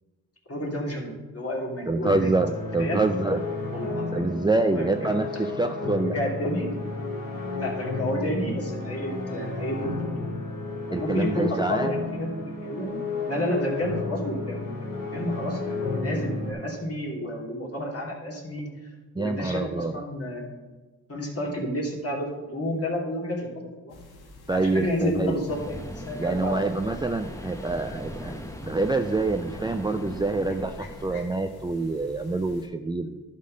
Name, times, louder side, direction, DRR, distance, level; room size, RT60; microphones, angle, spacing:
voice 1, 0.5-2.3 2.8-3.0 3.7-4.2 4.6-5.4 6.0-6.7 7.5-10.3 10.9-12.3 12.6-18.9 19.2-20.7 21.1-24.0 24.5-26.6, left 1 dB, 40° left, -2 dB, 2.9 m, -31 dB
voice 2, 1.9-3.4 4.1-6.2 10.9-11.9 19.2-19.9 24.5-25.4 26.2-33.2, right 3 dB, 10° right, 6 dB, 0.5 m, -26 dB
sound 1, 2.0-16.5, left 3 dB, 60° left, 2.3 m, -32 dB
sound 2, 23.9-32.7, left 2 dB, 80° left, 1.4 m, -48 dB
sound 3, 25.5-31.2, equal, 10° left, 1.0 m, -39 dB
11.0 x 3.8 x 6.4 m, 1.3 s
cardioid pair, 55°, 37 cm